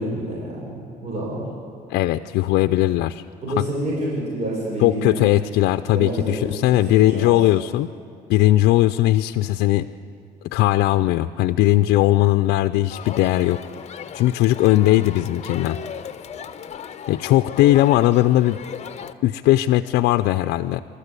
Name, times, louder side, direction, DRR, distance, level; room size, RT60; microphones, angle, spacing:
voice 1, 0.0-1.5 3.4-5.2 5.9-7.3, right 1 dB, 40° right, -4 dB, 6.0 m, -28 dB
voice 2, 1.9-3.2 3.6-3.7 4.8-7.9 8.3-9.9 10.5-13.6 14.1-15.8 17.1-18.6 19.2-20.8, left 15 dB, 80° left, 10 dB, 0.5 m, -18 dB
Crowd, 12.9-19.1, left 7 dB, 40° left, 0.9 m, -36 dB
27.0 x 13.0 x 8.3 m, 2.7 s
cardioid pair, 110°, 17 cm